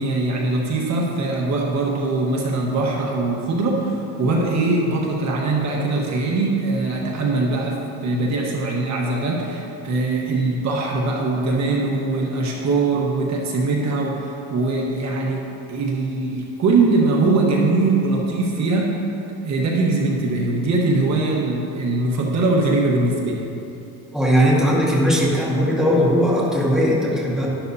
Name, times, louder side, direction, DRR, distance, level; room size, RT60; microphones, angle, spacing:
voice 1, 0.0-15.4 15.7-19.0 19.4-23.4, right 3 dB, 50° right, -2 dB, 1.4 m, -21 dB
voice 2, 24.1-27.5, equal, ahead, -5 dB, 1.8 m, -18 dB
11.5 x 11.5 x 2.8 m, 2.9 s
cardioid pair, 125°, 37 cm